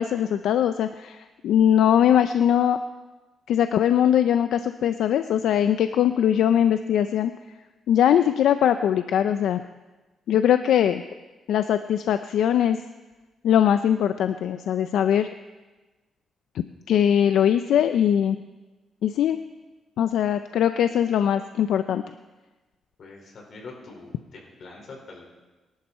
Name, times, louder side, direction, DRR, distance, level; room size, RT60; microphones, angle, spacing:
voice 1, 0.0-2.8 3.5-7.3 7.9-9.6 10.3-11.0 11.5-12.8 13.4-15.3 16.9-18.4 19.0-19.4 20.0-22.0, left 9 dB, 80° left, 10 dB, 0.5 m, -21 dB
voice 2, 23.0-25.3, left 3 dB, 55° left, 0 dB, 4.9 m, -44 dB
24.0 x 11.5 x 4.3 m, 1.2 s
cardioid pair, 110°, 0 cm